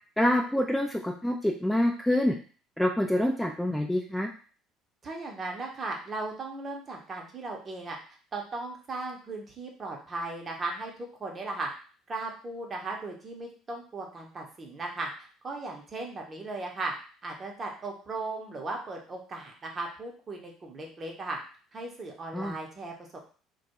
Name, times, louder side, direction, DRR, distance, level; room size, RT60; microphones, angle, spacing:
voice 1, 0.2-2.4 2.8-4.3 22.3-22.6, left 1 dB, 5° left, 1 dB, 0.4 m, -26 dB
voice 2, 5.0-8.0 8.3-10.9 11.2-11.7 12.1-15.1 15.4-16.9 17.2-21.4 21.7-23.2, right 2 dB, 35° right, 1 dB, 0.8 m, -37 dB
2.2 x 2.2 x 2.9 m, 0.39 s
hypercardioid pair, 60°, 0 cm